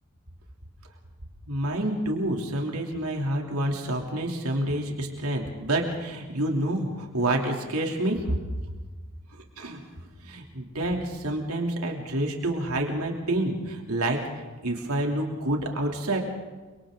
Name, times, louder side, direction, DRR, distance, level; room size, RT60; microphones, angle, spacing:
voice 1, 1.5-8.4 9.6-9.8 10.2-16.2, right 1 dB, 85° right, 1 dB, 3.0 m, -28 dB
30.0 x 24.5 x 3.8 m, 1.3 s
head